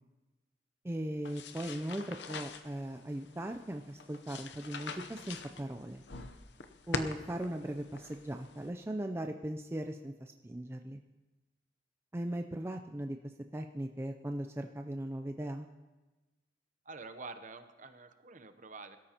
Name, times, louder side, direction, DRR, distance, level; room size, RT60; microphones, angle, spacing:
voice 1, 0.8-6.0 6.9-11.0 12.1-13.2 13.5-15.7, right 1 dB, 15° right, 4 dB, 0.4 m, -38 dB
sound 1, 1.2-8.7, left 4 dB, 65° left, 0.8 m, -44 dB
voice 2, 16.8-19.0, right 3 dB, 45° right, 9 dB, 0.8 m, -47 dB
22.0 x 13.0 x 2.9 m, 1.1 s
head